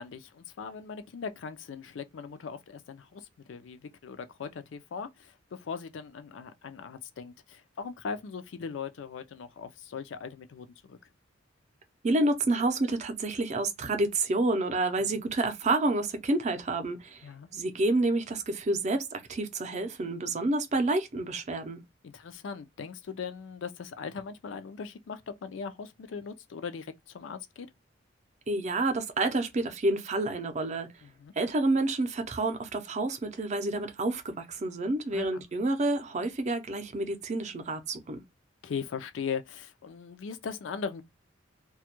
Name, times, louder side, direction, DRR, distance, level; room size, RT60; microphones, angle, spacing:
voice 1, 0.0-11.0 15.1-15.3 17.2-17.5 22.0-27.7 31.0-31.3 35.1-35.4 38.6-41.0, left 6 dB, 75° left, 0.4 m, -39 dB
voice 2, 12.0-17.3 17.5-21.8 28.5-30.9 31.4-38.2, right 2 dB, 40° right, 0.5 m, -29 dB
2.2 x 2.1 x 2.8 m
head